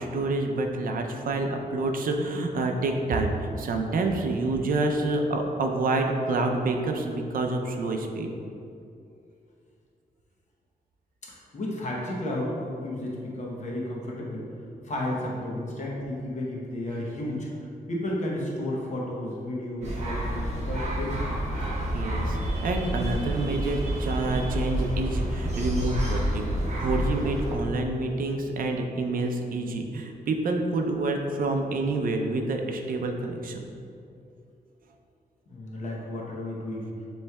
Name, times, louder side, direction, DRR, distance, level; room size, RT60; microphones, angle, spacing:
voice 1, 0.0-8.3 21.6-26.5 26.8-33.7, right 2 dB, 60° right, 3 dB, 0.5 m, -28 dB
voice 2, 11.2-14.5 14.8-21.3 35.5-36.9, left 1 dB, 50° left, -4 dB, 0.8 m, -33 dB
sound 1, 19.8-27.5, equal, 45° right, 0.9 m, -29 dB
7.3 x 3.2 x 2.2 m, 2.6 s
wide cardioid pair, 165°, 16 cm